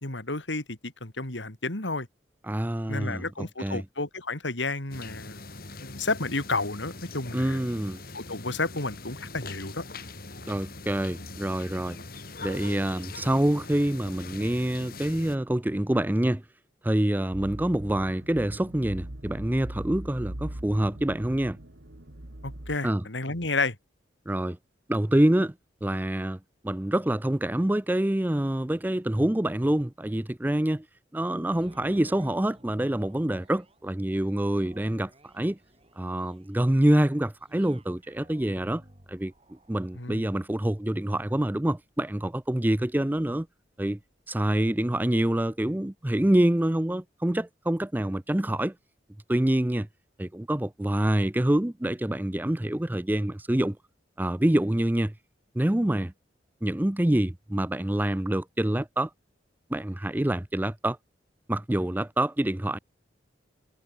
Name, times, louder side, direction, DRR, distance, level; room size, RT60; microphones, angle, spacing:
voice 1, 0.0-2.1 2.9-5.4 5.8-7.6 8.1-9.8 22.4-23.8 40.0-40.3, left 3 dB, 85° left, 3.9 m, -31 dB
voice 2, 2.4-3.8 7.3-8.0 10.5-12.0 12.4-16.4 16.8-21.6 22.8-23.0 24.3-24.6 24.9-25.5 25.8-30.9 31.1-35.6 36.0-38.8 39.1-39.3 39.7-43.5 43.8-44.0 44.3-48.7 49.3-49.9 50.2-53.8 54.2-55.1 55.5-56.1 56.6-59.1 59.7-61.0 61.5-62.8, right 1 dB, 10° right, 0.5 m, -26 dB
sound 1, 4.9-15.4, left 3 dB, 55° left, 7.9 m, -42 dB
sound 2, 17.3-22.8, right 1 dB, 80° right, 2.5 m, -40 dB
sound 3, 31.4-45.7 46.2-46.3, right 1 dB, 30° right, 7.4 m, -57 dB
head